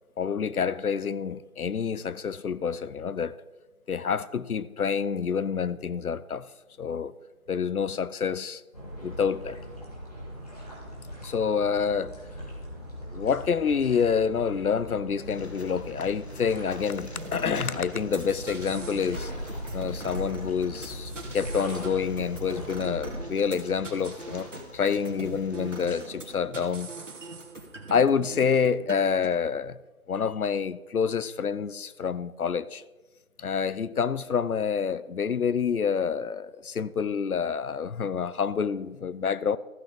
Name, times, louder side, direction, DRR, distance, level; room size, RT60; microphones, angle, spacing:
voice 1, 0.2-3.4 3.9-6.5 6.8-7.1 7.5-8.6 9.0-9.6 11.2-12.2 13.1-19.3 19.7-26.9 27.9-29.8 30.1-32.8 33.4-39.6, left 6 dB, 85° left, 0.7 m, -27 dB
sound 1, 8.7-23.2, equal, 25° left, 2.0 m, -40 dB
sound 2, 15.2-26.0, left 2 dB, 50° left, 1.2 m, -48 dB
sound 3, 17.1-29.3, right 2 dB, 60° right, 2.3 m, -41 dB
15.0 x 6.1 x 5.0 m
figure-of-eight pair, 175°, 43 cm